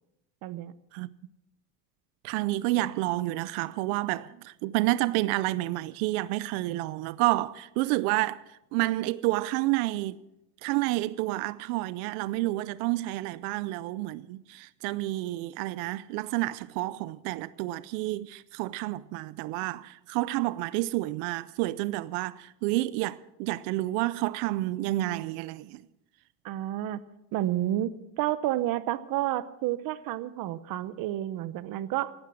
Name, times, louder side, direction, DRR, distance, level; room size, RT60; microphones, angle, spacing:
voice 1, 0.4-0.7 26.4-27.0 27.3-32.1, right 13 dB, 50° right, 0.9 m, -30 dB
voice 2, 2.2-8.4 8.7-10.2 10.6-25.8, right 18 dB, 90° right, 0.6 m, -29 dB
17.5 x 12.0 x 6.2 m
cardioid pair, 155°, 44 cm